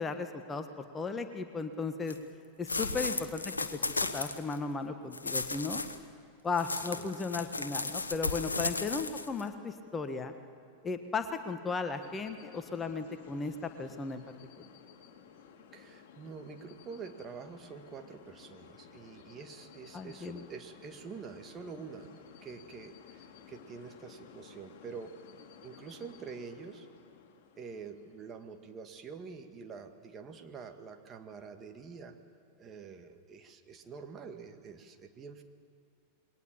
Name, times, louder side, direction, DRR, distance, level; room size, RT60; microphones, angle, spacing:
voice 1, 0.0-2.2 2.6-3.8 4.1-5.8 6.4-10.3 10.8-14.2 14.6-14.7 19.9-20.4, left 4 dB, 20° left, 8 dB, 1.4 m, -36 dB
sound 1, 2.1-2.2 2.7-4.6 5.1-6.0 6.6-9.4, left 3 dB, 75° left, 1.1 m, -35 dB
voice 2, 2.7-3.1 6.7-7.1 8.5-8.7 15.7-22.1 22.4-25.1 25.6-26.9 27.6-32.2 32.6-35.4, right 5 dB, 25° right, 5 dB, 1.9 m, -46 dB
sound 2, 12.0-28.8, left 7 dB, 50° left, 2.3 m, -55 dB
28.0 x 22.0 x 7.3 m, 2.6 s
figure-of-eight pair, 90°, 0 cm